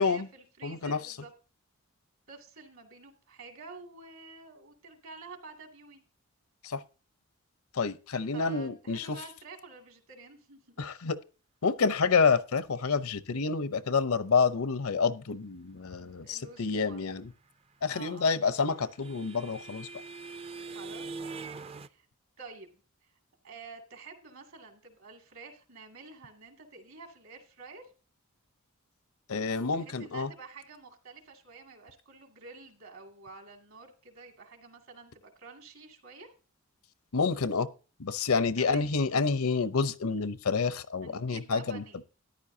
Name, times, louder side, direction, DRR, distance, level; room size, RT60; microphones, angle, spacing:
voice 1, 0.0-1.3 2.3-6.0 8.2-10.8 16.2-17.0 17.9-18.4 20.7-22.1 22.4-22.8 23.4-27.9 29.6-36.3 38.6-38.9 41.0-42.0, right 4 dB, 70° right, 2.4 m, -49 dB
voice 2, 0.6-1.0 6.6-6.8 7.7-9.1 10.8-11.2 11.6-17.3 17.8-19.9 29.3-30.3 37.1-37.7 38.0-42.0, left 5 dB, 80° left, 0.7 m, -28 dB
sound 1, 18.0-21.9, right 4 dB, 25° right, 0.4 m, -43 dB
13.5 x 10.5 x 2.8 m
head